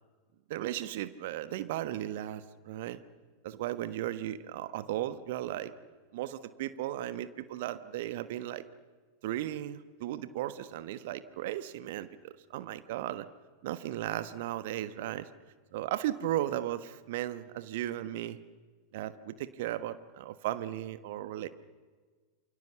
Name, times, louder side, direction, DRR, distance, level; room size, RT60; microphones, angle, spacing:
voice 1, 0.5-3.0 3.4-5.7 6.1-8.6 9.2-13.3 13.6-15.3 15.7-18.4 18.9-21.5, right 13 dB, 50° right, 13 dB, 1.3 m, -36 dB
28.5 x 28.0 x 7.3 m, 1.4 s
figure-of-eight pair, 90°, 0 cm